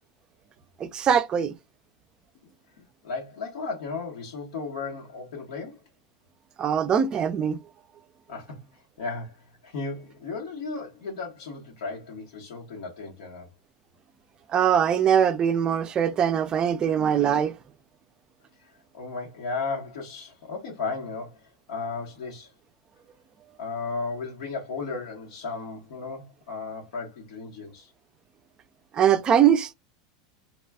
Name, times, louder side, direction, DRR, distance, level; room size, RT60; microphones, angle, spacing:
voice 1, 0.8-1.5 6.6-7.6 14.5-17.5 28.9-29.7, right 8 dB, 25° right, 0.4 m, -22 dB
voice 2, 2.8-5.8 8.3-13.5 18.6-22.5 23.6-27.9, left 4 dB, 80° left, 1.1 m, -35 dB
2.4 x 2.2 x 3.4 m
supercardioid pair, 135°, 3 cm